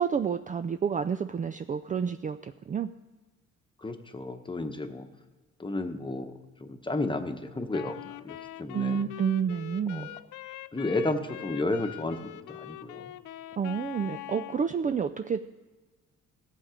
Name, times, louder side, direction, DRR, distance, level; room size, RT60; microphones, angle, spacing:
voice 1, 0.0-2.9 8.7-10.1 13.6-15.5, right 7 dB, 25° right, 10 dB, 0.4 m, -29 dB
voice 2, 3.8-5.1 5.6-6.3 6.6-9.0 9.9-10.0 10.7-13.1, left 2 dB, 15° left, 7 dB, 1.0 m, -32 dB
Wind instrument woodwind instrument, 7.7-14.7, left 15 dB, 80° left, 0.5 m, -43 dB
15.5 x 7.3 x 5.1 m, 1.3 s
cardioid pair, 90°, 30 cm